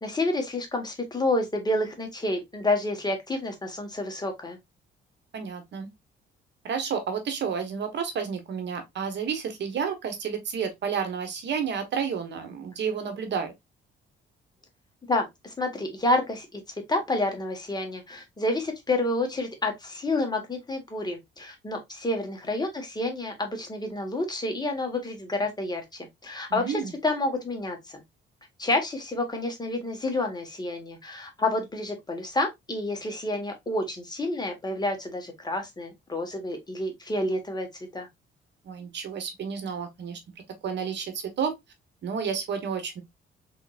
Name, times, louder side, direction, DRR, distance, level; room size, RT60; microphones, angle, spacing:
voice 1, 0.0-4.6 15.1-16.6 16.9-25.8 26.2-28.0 28.6-37.7 37.9-38.1, left 2 dB, 20° left, 1.3 m, -29 dB
voice 2, 5.3-5.9 6.6-13.5 26.5-26.9 38.6-40.2 40.6-41.5 42.0-43.0, right 6 dB, 65° right, 1.1 m, -31 dB
3.7 x 3.6 x 2.4 m
cardioid pair, 90°, 20 cm